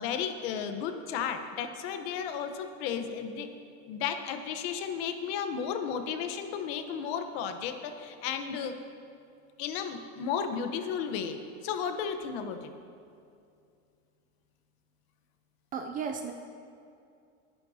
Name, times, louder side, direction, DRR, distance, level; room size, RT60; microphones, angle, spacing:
voice 1, 0.0-3.5 3.9-8.8 9.6-12.7, left 7 dB, 55° left, 7 dB, 1.1 m, -34 dB
voice 2, 15.7-16.3, right 6 dB, 25° right, 5 dB, 0.4 m, -34 dB
19.5 x 10.5 x 2.8 m, 2.4 s
supercardioid pair, 160°, 36 cm